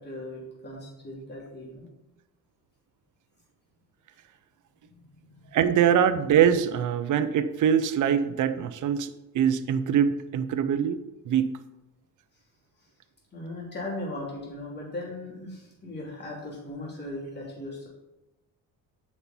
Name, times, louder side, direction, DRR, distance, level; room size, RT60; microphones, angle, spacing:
voice 1, 0.0-1.9 4.9-5.6 12.8-12.9 13.3-17.9, left 1 dB, 30° left, -3 dB, 3.2 m, -38 dB
voice 2, 5.5-11.0 11.3-11.6, right 8 dB, 60° right, 11 dB, 0.7 m, -23 dB
8.5 x 5.6 x 4.4 m, 0.97 s
cardioid pair, 115°, 36 cm